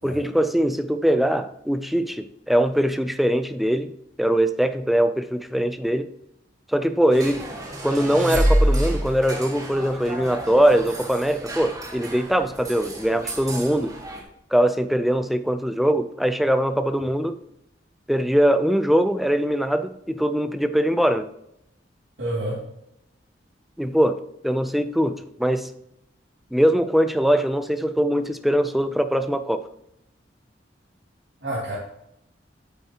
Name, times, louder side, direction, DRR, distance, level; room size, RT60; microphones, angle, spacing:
voice 1, 0.0-3.9 4.2-6.1 6.7-7.5 7.8-13.9 14.5-17.4 18.1-21.3 23.8-25.7 26.5-29.7, equal, ahead, 0.3 m, -22 dB
sound 1, 7.1-14.2, right 2 dB, 20° right, 1.7 m, -36 dB
sound 2, 7.5-9.2, right 1 dB, 45° right, 1.4 m, -22 dB
voice 2, 22.2-22.6 31.4-31.7, right 1 dB, 80° right, 2.5 m, -28 dB
9.0 x 8.1 x 2.8 m
head